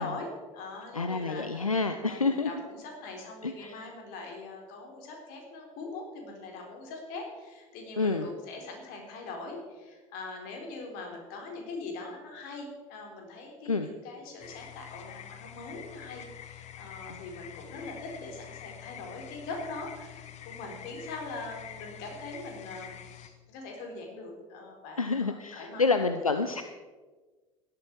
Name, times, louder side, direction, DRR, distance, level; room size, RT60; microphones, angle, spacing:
voice 1, 0.0-26.3, left 3 dB, 55° left, 2 dB, 4.2 m, -42 dB
voice 2, 0.9-2.5 3.4-3.9 8.0-8.3 13.7-13.9 17.1-17.2 25.0-26.6, left 4 dB, 90° left, 8 dB, 0.6 m, -28 dB
sound 1, 14.4-23.3, left 10 dB, 40° left, 1.4 m, -46 dB
16.5 x 12.5 x 4.7 m, 1.3 s
figure-of-eight pair, 65°, 17 cm